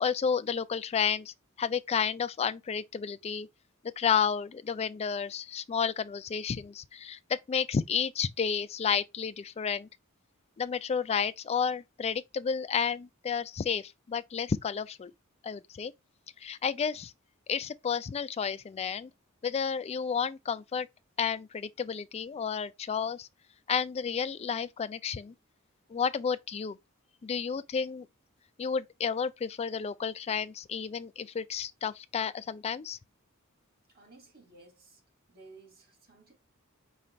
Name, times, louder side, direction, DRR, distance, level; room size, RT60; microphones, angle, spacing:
voice 1, 0.0-3.5 4.0-9.9 10.6-15.1 15.4-15.9 16.4-17.1 17.5-19.1 19.4-20.9 21.2-23.3 23.7-25.3 25.9-26.8 27.2-28.1 28.6-33.0, left 6 dB, 30° left, 0.3 m, -31 dB
voice 2, 33.9-35.0 35.3-36.3, right 3 dB, 45° right, 2.5 m, -55 dB
5.1 x 2.4 x 4.3 m
head